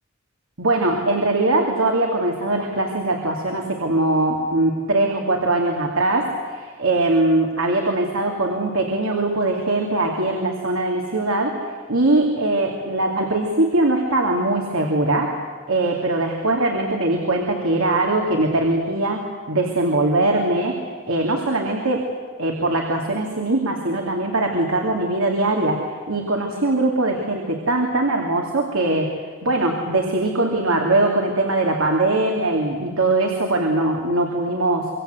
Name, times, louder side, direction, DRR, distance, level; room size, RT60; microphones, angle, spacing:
voice 1, 0.6-15.4 15.7-22.1 22.4-29.1 29.4-34.9, right 2 dB, 85° right, 1 dB, 2.8 m, -21 dB
25.5 x 24.5 x 8.1 m, 1.5 s
head